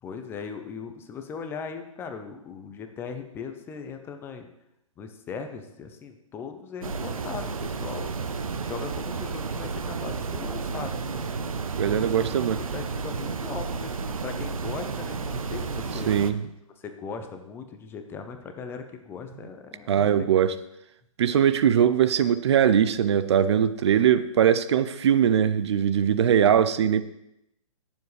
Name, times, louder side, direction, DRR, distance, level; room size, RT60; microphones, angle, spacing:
voice 1, 0.0-4.5 5.0-8.1 8.6-11.3 12.0-12.3 12.6-16.1 16.8-20.3, left 5 dB, 15° left, 7 dB, 0.7 m, -39 dB
sound 1, 6.8-16.3, right 4 dB, 80° right, 0.9 m, -32 dB
voice 2, 11.8-12.6 16.1-16.4 19.9-20.5 21.2-27.0, right 9 dB, 50° right, 13 dB, 0.5 m, -21 dB
18.5 x 7.2 x 3.3 m, 0.83 s
hypercardioid pair, 145°, 18 cm